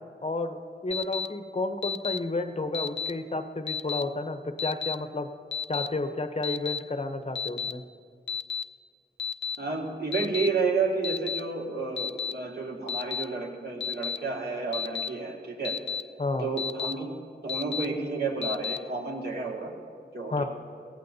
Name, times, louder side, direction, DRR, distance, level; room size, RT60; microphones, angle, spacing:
voice 1, 0.2-5.3 5.7-7.8 16.2-16.5 20.3-20.4, left 2 dB, 35° left, 7 dB, 0.8 m, -31 dB
Alarm, 0.9-1.3 1.8-2.2 2.7-3.1 3.7-4.0 4.6-4.9 5.5-5.9 6.4-6.8 7.4-7.7 8.3-8.6 9.2-9.6 10.1-10.5 11.0-11.4 12.0-12.3 12.9-13.2 13.8-14.2 14.7-15.1 15.6-16.0 16.6-16.9 17.5-17.9 18.4-18.8, left 6 dB, 85° left, 0.5 m, -31 dB
voice 2, 9.6-15.7 16.4-17.1 17.4-19.7 20.1-20.4, right 4 dB, 60° right, -1 dB, 2.0 m, -31 dB
18.0 x 14.5 x 2.8 m, 2.2 s
wide cardioid pair, 80°, 19 cm